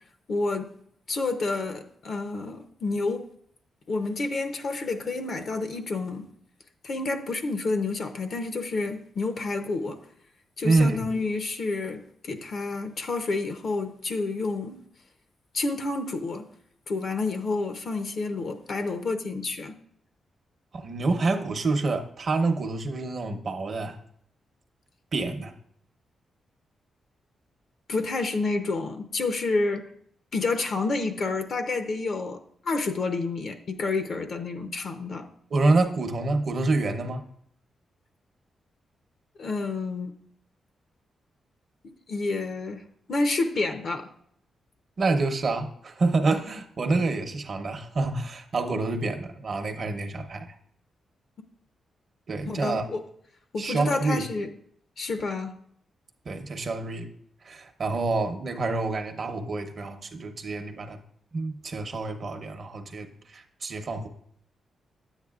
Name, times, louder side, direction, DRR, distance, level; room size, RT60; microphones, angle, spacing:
voice 1, 0.3-0.7 1.1-3.3 3.9-6.2 6.8-10.0 10.6-14.8 15.5-16.4 16.9-19.7 27.9-29.8 30.3-32.4 32.6-35.3 39.4-40.1 42.1-44.1 52.5-53.0 53.5-54.5 55.0-55.5, left 3 dB, 60° left, 6 dB, 0.6 m, -29 dB
voice 2, 10.6-11.0 20.7-24.0 25.1-25.5 35.5-37.2 45.0-50.6 52.3-52.8 53.6-54.2 56.3-57.1 57.4-61.0 61.3-64.1, right 3 dB, 50° right, 5 dB, 0.8 m, -27 dB
10.0 x 8.1 x 2.4 m, 0.67 s
cardioid pair, 105°, 0 cm